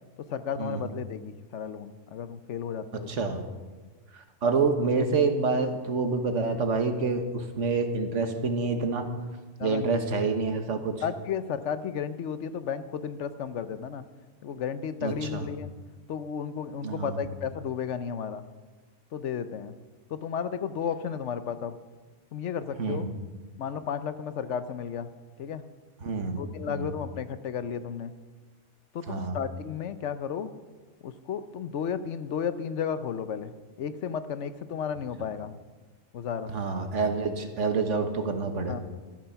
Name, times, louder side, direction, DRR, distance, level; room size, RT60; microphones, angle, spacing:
voice 1, 0.3-3.2 9.6-10.0 11.0-14.0 14.4-15.7 16.1-18.4 19.1-19.7 20.1-21.8 22.3-23.1 23.6-25.1 25.4-25.6 26.4-28.1 28.9-30.5 31.0-33.5 33.8-35.6 36.1-36.5 38.7-38.8, left 7 dB, 75° left, 12 dB, 1.1 m, -33 dB
voice 2, 2.9-3.5 4.1-9.1 9.6-11.0 15.0-15.4 16.8-17.2 22.8-23.1 26.0-26.4 26.7-26.9 29.1-29.4 36.5-38.8, right 4 dB, 85° right, 6 dB, 1.6 m, -27 dB
13.5 x 12.5 x 5.8 m, 1.3 s
omnidirectional pair, 1.2 m